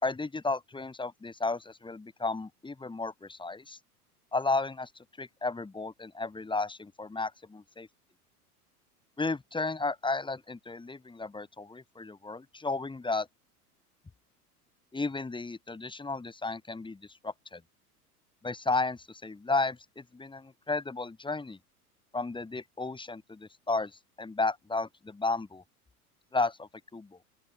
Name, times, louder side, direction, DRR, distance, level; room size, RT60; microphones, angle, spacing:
voice 1, 0.0-3.8 4.3-4.9 5.2-7.9 9.2-13.3 14.9-17.6 18.4-21.6 22.1-25.6 26.3-27.2, left 3 dB, 10° left, 5.7 m, -33 dB
open air
figure-of-eight pair, 85°, 46 cm